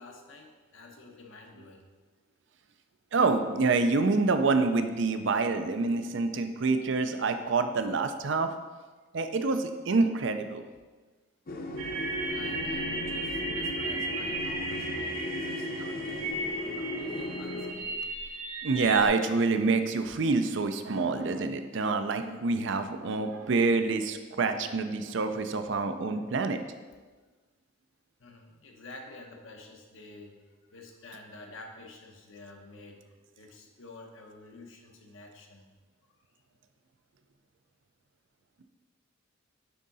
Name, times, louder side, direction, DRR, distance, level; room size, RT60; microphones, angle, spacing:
voice 1, 0.0-1.9 12.2-16.3 16.8-18.0 28.2-30.4 30.7-33.0 33.3-35.7, left 2 dB, 70° left, 2 dB, 1.0 m, -49 dB
voice 2, 3.1-8.6 9.1-10.7 18.6-26.6, right 3 dB, 60° right, 8 dB, 0.5 m, -27 dB
sound 1, 11.5-17.7, left 1 dB, 45° left, 0.6 m, -36 dB
sound 2, 11.8-19.1, right 2 dB, 75° right, 1.7 m, -35 dB
9.3 x 3.7 x 4.0 m, 1.3 s
head